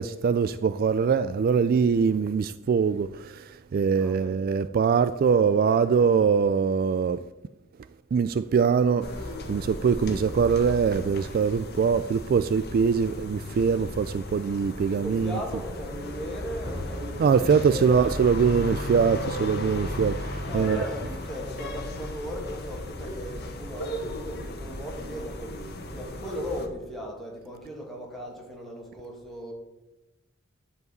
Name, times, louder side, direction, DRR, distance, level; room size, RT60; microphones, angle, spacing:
voice 1, 0.0-7.2 8.1-9.1 9.5-15.3 17.2-20.8, right 6 dB, 45° right, 0.3 m, -23 dB
voice 2, 4.0-4.4 10.0-10.2 14.9-18.2 20.4-29.5, equal, ahead, 2.4 m, -37 dB
sound 1, 9.0-26.7, left 1 dB, 50° left, 1.3 m, -36 dB
11.0 x 4.8 x 8.0 m
head